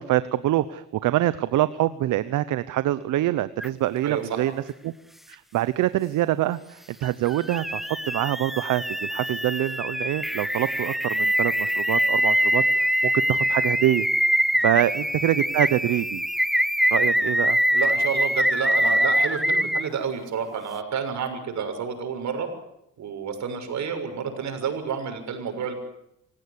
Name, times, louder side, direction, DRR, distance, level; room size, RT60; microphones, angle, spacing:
voice 1, 0.0-4.5 4.8-4.9 5.3-14.1 14.6-16.2 16.9-17.6, right 14 dB, 85° right, 14 dB, 1.0 m, -25 dB
sound 1, 3.6-3.7 7.0-19.9, equal, ahead, 0.8 m, -24 dB
voice 2, 4.0-4.4 14.5-14.8 17.0-17.1 17.7-22.5 23.0-25.7, right 6 dB, 70° right, 7 dB, 6.6 m, -30 dB
27.0 x 17.0 x 8.4 m, 0.81 s
cardioid pair, 90°, 30 cm